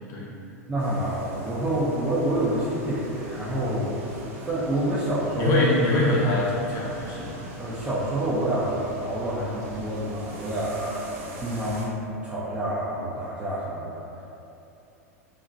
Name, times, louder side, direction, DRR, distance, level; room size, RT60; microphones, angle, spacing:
voice 1, 0.7-5.5 7.6-11.1 11.4-14.0, right 1 dB, 15° right, -10 dB, 0.5 m, -28 dB
sound 1, 0.8-11.8, right 2 dB, 55° right, 0.7 m, -41 dB
voice 2, 5.4-7.4, left 2 dB, 40° left, -5 dB, 0.8 m, -23 dB
3.9 x 2.1 x 2.5 m, 2.8 s
hypercardioid pair, 100°, 8 cm